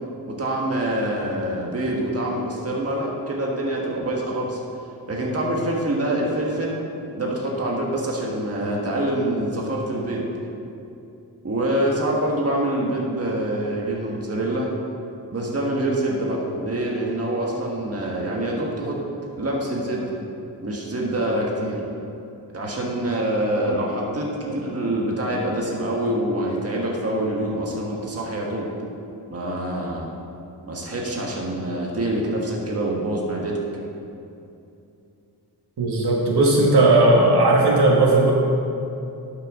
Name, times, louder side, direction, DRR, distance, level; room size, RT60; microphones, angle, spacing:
voice 1, 0.3-4.6 5.1-6.8 7.1-10.2 11.4-14.7 15.3-19.0 19.3-20.0 20.6-21.8 22.5-28.7 29.3-30.0 30.6-33.5, right 1 dB, 35° right, -2 dB, 1.5 m, -25 dB
voice 2, 35.8-38.3, right 2 dB, 75° right, -2 dB, 1.6 m, -16 dB
11.5 x 6.6 x 3.7 m, 2.7 s
wide cardioid pair, 100°, 40 cm